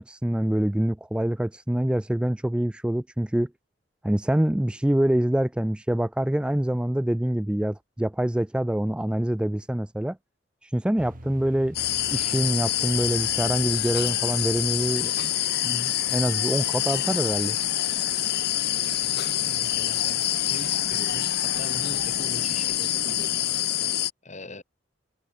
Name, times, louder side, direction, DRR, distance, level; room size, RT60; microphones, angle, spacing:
voice 1, 0.0-3.5 4.0-10.2 10.6-11.8 12.1-15.3 15.6-17.6, right 1 dB, 5° right, 0.3 m, -25 dB
sound 1, 11.0-23.6, right 1 dB, 50° right, 3.4 m, -49 dB
sound 2, 11.7-24.1, left 12 dB, 60° left, 1.2 m, -26 dB
voice 2, 18.8-23.3 24.2-24.6, left 1 dB, 40° left, 5.8 m, -41 dB
head